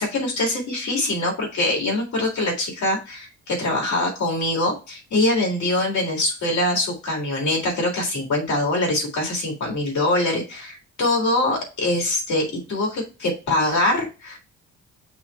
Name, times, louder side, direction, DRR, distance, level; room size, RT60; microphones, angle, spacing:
voice 1, 0.0-14.4, left 2 dB, 70° left, 0 dB, 3.5 m, -23 dB
6.1 x 3.2 x 5.5 m, 0.31 s
cardioid pair, 90°, 30 cm